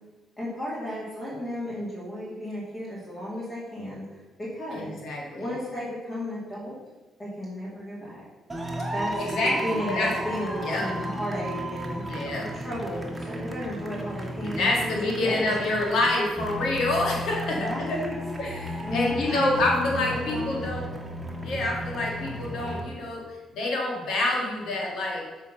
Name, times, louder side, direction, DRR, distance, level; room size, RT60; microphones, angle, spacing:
voice 1, 0.4-4.9 5.3-6.8 7.2-8.2 8.9-12.0 12.5-15.7 17.5-18.2 18.8-20.7, equal, 30° left, -7 dB, 2.5 m, -34 dB
voice 2, 4.7-5.4 9.2-10.1 10.6-10.9 12.1-12.5 14.4-18.0 18.4-20.9 21.4-23.2 23.5-25.3, left 2 dB, 70° left, -1 dB, 2.0 m, -27 dB
sound 1, 8.5-22.8, equal, 15° right, 1.4 m, -34 dB
7.2 x 4.4 x 5.6 m, 1.2 s
cardioid pair, 90°, 0 cm